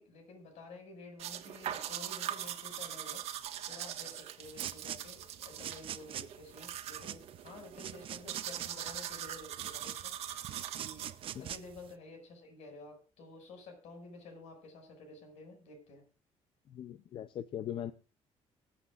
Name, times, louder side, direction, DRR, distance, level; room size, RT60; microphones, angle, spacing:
voice 1, 0.0-3.3 3.7-10.5 10.7-16.0, left 2 dB, 75° left, 6.2 m, -51 dB
sound 1, 1.2-11.4, right 11 dB, 70° right, 1.6 m, -42 dB
sound 2, 4.4-11.9, right 11 dB, 50° right, 0.8 m, -45 dB
voice 2, 16.7-17.9, left 10 dB, 50° left, 0.6 m, -40 dB
24.5 x 8.4 x 2.5 m
cardioid pair, 165°, 11 cm